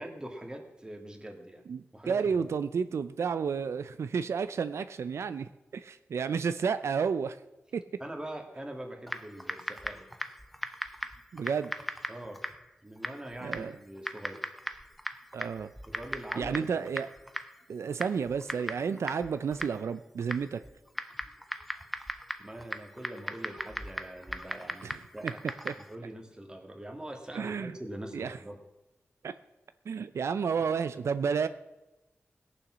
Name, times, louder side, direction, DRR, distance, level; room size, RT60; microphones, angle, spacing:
voice 1, 0.0-1.6 1.9-2.4 8.0-10.1 12.1-12.4 12.8-14.4 15.9-16.9 22.4-25.4 25.9-28.6 30.6-30.8, right 1 dB, 15° right, 3 dB, 2.0 m, -43 dB
voice 2, 1.7-7.4 7.7-7.8 11.3-11.7 13.4-13.8 15.3-15.7 16.4-17.1 17.7-20.6 24.8-25.3 25.6-25.7 27.3-27.8 28.1-28.4 29.2-29.3 29.9-31.5, right 6 dB, 85° right, 12 dB, 0.5 m, -31 dB
Typing, 9.1-26.0, equal, ahead, 0.7 m, -40 dB
17.5 x 7.0 x 6.2 m, 1.0 s
wide cardioid pair, 125°, 5 cm